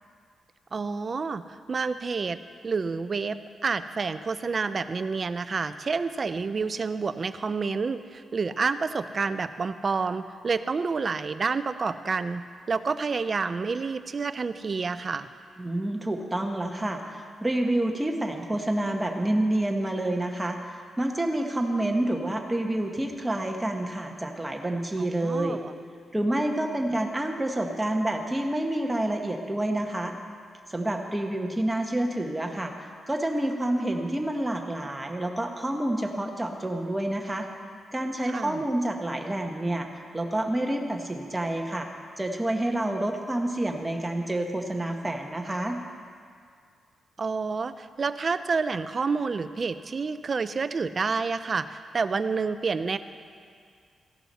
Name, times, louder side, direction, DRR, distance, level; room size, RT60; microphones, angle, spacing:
voice 1, 0.7-2.4 2.6-15.3 25.0-25.7 38.3-38.6 47.2-53.0, right 4 dB, 35° right, 12 dB, 0.4 m, -29 dB
voice 2, 15.6-25.6 26.1-30.2 30.7-37.5 37.9-41.9 42.2-45.8, right 1 dB, 10° right, 2 dB, 1.0 m, -28 dB
15.0 x 11.5 x 4.2 m, 2.2 s
wide cardioid pair, 160°, 0 cm